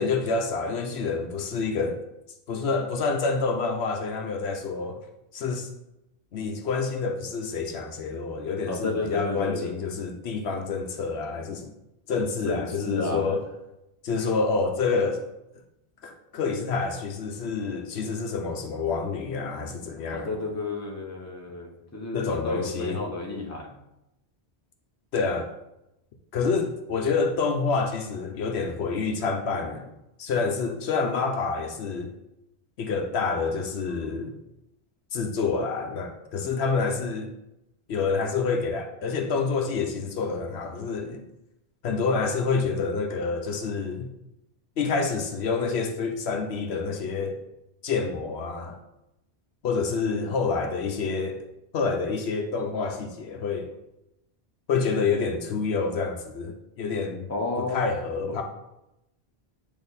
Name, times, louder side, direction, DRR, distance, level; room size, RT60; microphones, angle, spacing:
voice 1, 0.0-2.0 2.5-5.0 5.3-5.7 6.3-11.7 12.1-13.4 14.0-15.2 16.0-20.3 22.1-23.0 25.1-25.5 26.3-29.9 30.2-32.1 32.8-34.3 35.1-37.3 37.9-41.2 41.8-44.1 44.8-47.4 47.8-48.8 49.6-51.4 51.7-53.7 54.7-57.3 57.6-58.4, left 4 dB, 75° left, 4 dB, 0.9 m, -28 dB
voice 2, 8.7-9.7 12.4-13.3 20.1-23.7 57.3-57.9 58.3-58.4, left 3 dB, 15° left, 0 dB, 0.9 m, -32 dB
8.6 x 3.0 x 4.0 m, 0.89 s
omnidirectional pair, 1.1 m